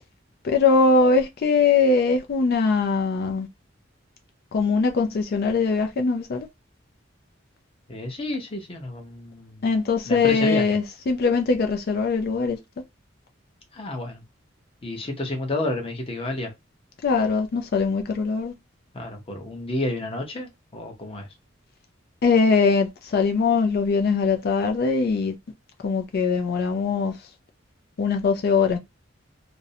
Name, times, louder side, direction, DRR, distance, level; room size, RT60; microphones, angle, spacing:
voice 1, 0.4-3.5 4.5-6.5 9.6-12.6 17.0-18.5 22.2-25.3 25.8-27.1 28.0-28.8, left 4 dB, 50° left, 0.3 m, -21 dB
voice 2, 7.9-9.6 10.1-10.6 13.7-14.2 14.8-16.5 18.9-21.3, left 2 dB, 30° left, 0.7 m, -30 dB
2.5 x 2.0 x 2.6 m
head